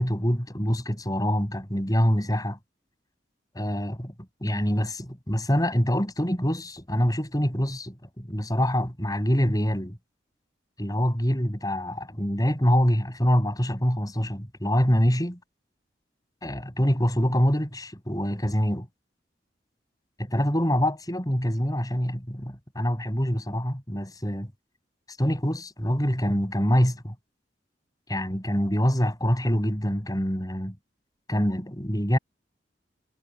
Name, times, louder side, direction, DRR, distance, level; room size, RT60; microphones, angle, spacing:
voice 1, 0.0-2.6 3.5-4.1 4.4-10.0 10.8-15.4 16.4-18.9 20.2-24.5 25.2-27.1 28.1-30.8 31.3-32.2, equal, 20° left, 6.9 m, -25 dB
head